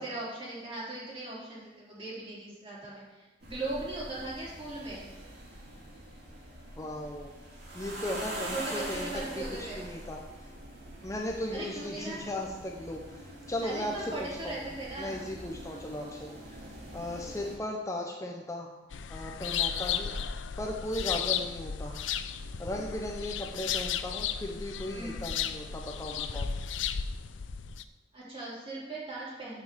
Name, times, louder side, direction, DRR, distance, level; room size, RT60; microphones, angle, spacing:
voice 1, 0.0-5.1 8.5-9.8 11.5-12.2 13.6-15.2 15.7-16.0 24.9-25.3 28.1-29.6, right 2 dB, 30° right, -7 dB, 3.7 m, -39 dB
sound 1, 3.4-17.6, right 1 dB, 60° right, 2.5 m, -44 dB
voice 2, 6.8-7.3 7.7-10.5 11.0-14.6 15.0-18.7 19.1-20.1 20.6-22.1 22.6-26.6, left 1 dB, 15° left, 0 dB, 0.8 m, -37 dB
sound 2, 18.9-27.8, left 8 dB, 90° left, 0.5 m, -34 dB
7.2 x 6.8 x 6.8 m, 1.1 s
head